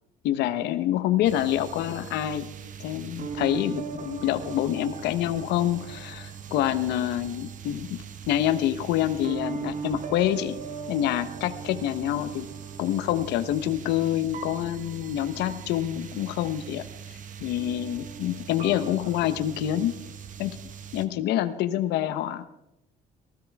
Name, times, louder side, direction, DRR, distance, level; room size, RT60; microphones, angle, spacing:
voice 1, 0.2-2.5 2.8-10.6 10.9-12.5 12.8-16.9 17.4-19.9 20.4-20.6 20.9-22.5, left 12 dB, 85° left, 11 dB, 1.1 m, -27 dB
sound 1, 1.2-21.1, right 6 dB, 50° right, 1.2 m, -39 dB
18.5 x 15.5 x 3.6 m, 0.87 s
cardioid pair, 110°, 17 cm